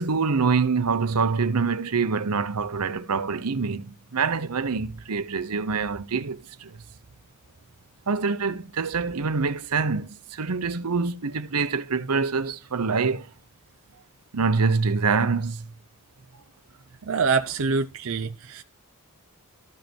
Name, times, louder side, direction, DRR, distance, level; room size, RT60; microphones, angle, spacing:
voice 1, 0.0-6.8 8.1-13.3 14.3-15.7, right 4 dB, 85° right, 0.8 m, -25 dB
voice 2, 17.1-18.6, right 4 dB, 65° right, 0.6 m, -25 dB
13.5 x 5.2 x 4.5 m
head